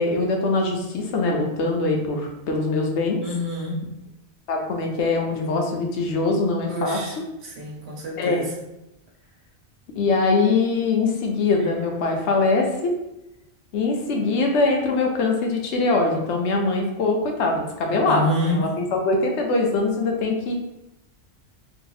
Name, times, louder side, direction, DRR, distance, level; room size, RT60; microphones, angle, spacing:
voice 1, 0.0-3.2 4.5-7.0 8.2-8.4 10.0-12.9 13.7-20.5, left 3 dB, 75° left, 2 dB, 0.9 m, -22 dB
voice 2, 3.2-3.8 6.7-8.5 18.1-18.6, left 1 dB, 65° right, -3 dB, 1.1 m, -28 dB
2.7 x 2.3 x 3.8 m, 0.90 s
omnidirectional pair, 1.2 m